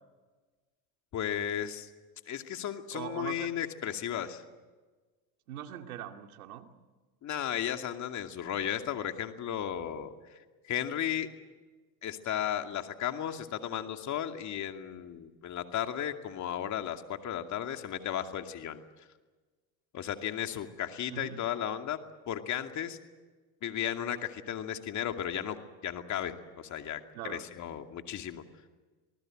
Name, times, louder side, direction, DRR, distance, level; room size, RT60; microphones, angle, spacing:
voice 1, 1.1-1.9 2.3-4.4 7.2-11.3 12.0-18.8 19.9-22.0 22.3-23.0 23.6-25.6 25.8-28.4, left 10 dB, 40° left, 6 dB, 2.5 m, -35 dB
voice 2, 2.9-3.5 5.5-6.7 21.1-21.4 27.1-27.4, right 10 dB, 90° right, 5 dB, 2.4 m, -41 dB
27.5 x 19.5 x 7.8 m, 1.3 s
supercardioid pair, 100°, 42 cm